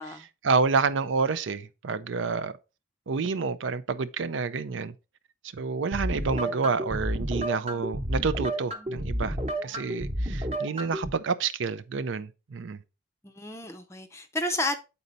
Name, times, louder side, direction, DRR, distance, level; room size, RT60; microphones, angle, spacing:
voice 1, 0.4-2.5 3.1-4.9 5.5-9.4 9.6-12.8, right 4 dB, 85° right, 0.5 m, -28 dB
sound 1, 5.9-11.1, right 1 dB, 35° right, 1.0 m, -31 dB
voice 2, 6.2-6.7 13.2-14.8, left 2 dB, 15° left, 0.5 m, -32 dB
7.9 x 4.2 x 4.0 m
head